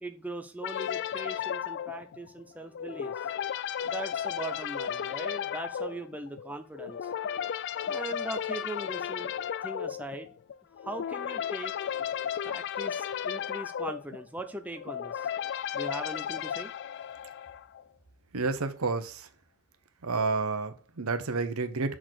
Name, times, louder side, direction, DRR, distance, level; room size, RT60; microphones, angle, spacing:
voice 1, 0.0-3.3 3.8-7.1 7.9-9.3 9.6-10.3 10.8-11.7 12.4-15.3 15.7-16.7, right 1 dB, 5° right, 0.5 m, -40 dB
sound 1, 0.6-17.8, left 9 dB, 50° left, 0.3 m, -34 dB
voice 2, 18.3-19.3 20.0-22.0, right 4 dB, 75° right, 0.9 m, -30 dB
6.1 x 4.1 x 6.3 m
head